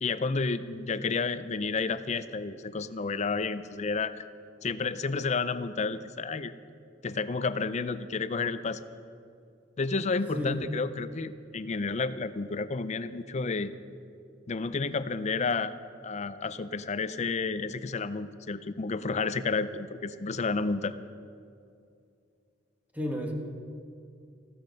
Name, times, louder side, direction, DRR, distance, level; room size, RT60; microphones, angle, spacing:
voice 1, 0.0-4.2 4.6-6.5 7.0-8.8 9.8-13.7 14.5-15.7 16.0-20.9, left 4 dB, 35° left, 13 dB, 0.5 m, -31 dB
voice 2, 22.9-23.3, equal, 10° right, 1 dB, 1.3 m, -32 dB
14.5 x 12.0 x 5.3 m, 2.5 s
head